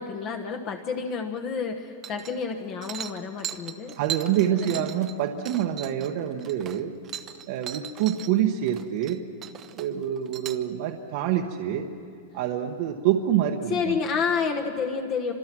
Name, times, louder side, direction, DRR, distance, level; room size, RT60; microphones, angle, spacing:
voice 1, 0.0-3.9 4.5-4.8 13.7-15.3, left 5 dB, 30° left, 4 dB, 1.2 m, -29 dB
sound 1, 2.0-2.5 2.8-8.3 8.6-9.2 9.4-10.6, right 11 dB, 25° right, 0.9 m, -38 dB
voice 2, 4.0-6.9 7.5-9.2 9.7-11.9 12.3-14.0, right 10 dB, 45° right, 3 dB, 1.2 m, -26 dB
29.5 x 26.0 x 6.1 m, 2.5 s
supercardioid pair, 170°, 0 cm